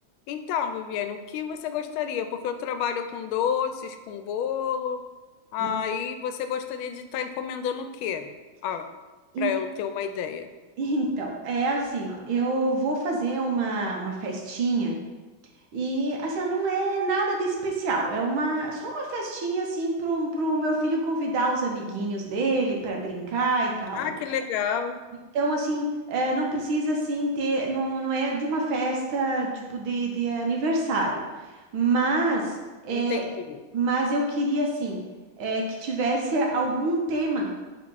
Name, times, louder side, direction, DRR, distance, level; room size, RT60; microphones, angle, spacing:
voice 1, 0.3-5.0 5.5-8.3 8.6-8.8 9.4-10.5 23.9-25.0 32.9-33.6, left 8 dB, 85° left, 8 dB, 1.4 m, -30 dB
voice 2, 10.8-15.0 15.7-24.1 25.3-31.2 31.7-32.6 32.8-33.2 33.7-35.0 35.4-37.5, right 2 dB, 80° right, 0 dB, 1.8 m, -26 dB
6.0 x 4.1 x 4.7 m, 1.2 s
omnidirectional pair, 2.2 m